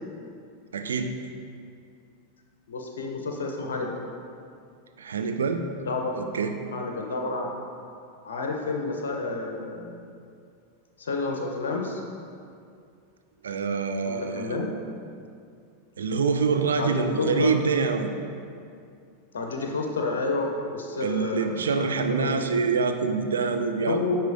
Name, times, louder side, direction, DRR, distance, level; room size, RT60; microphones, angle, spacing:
voice 1, 0.7-1.1 5.0-5.7 6.2-6.6 13.4-14.6 16.0-18.1 21.0-24.2, right 5 dB, 65° right, 7 dB, 0.4 m, -26 dB
voice 2, 2.7-4.0 5.8-6.2 6.7-7.5 8.2-10.0 11.0-12.0 14.1-14.7 16.8-17.6 19.3-22.7 23.9-24.2, left 3 dB, 65° left, 1 dB, 0.6 m, -30 dB
9.2 x 4.3 x 2.5 m, 2.4 s
figure-of-eight pair, 90°, 0 cm